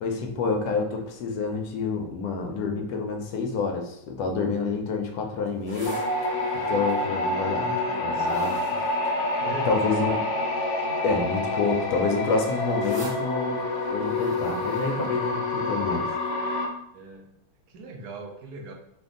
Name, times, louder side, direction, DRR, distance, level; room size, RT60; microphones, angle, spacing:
voice 1, 0.0-6.0 6.7-7.7 8.0-8.6 9.0-9.1 9.7-10.2 11.0-13.6 13.9-16.1, left 4 dB, 80° left, 3 dB, 1.2 m, -28 dB
sound 1, 5.5-9.9 10.6-10.9 11.2-15.8 16.2-16.3, equal, 15° right, 0.9 m, -45 dB
sound 2, 5.8-16.7, left 2 dB, 65° left, 0.7 m, -27 dB
voice 2, 7.5-8.3 8.7-8.9 9.4-9.9 16.9-17.3 17.7-18.7, equal, 75° right, 2 dB, 1.2 m, -39 dB
3.4 x 2.2 x 3.6 m, 0.80 s
omnidirectional pair, 1.7 m